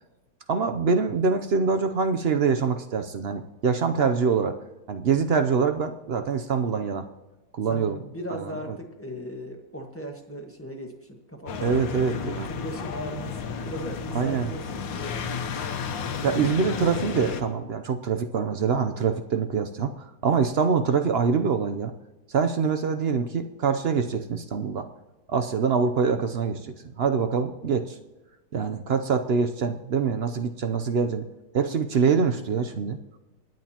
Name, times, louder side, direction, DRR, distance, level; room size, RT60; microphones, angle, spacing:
voice 1, 0.5-4.5 4.9-7.0 7.5-8.0 11.6-12.5 14.1-14.5 16.2-21.9 22.3-24.9 25.3-27.9 28.5-31.2 31.5-33.0, right 5 dB, 75° right, 7 dB, 0.5 m, -24 dB
voice 2, 7.7-15.2, equal, 10° left, 1 dB, 1.4 m, -38 dB
sound 1, 11.5-17.4, left 6 dB, 85° left, 1.7 m, -32 dB
26.5 x 9.3 x 2.9 m, 1.1 s
omnidirectional pair, 2.0 m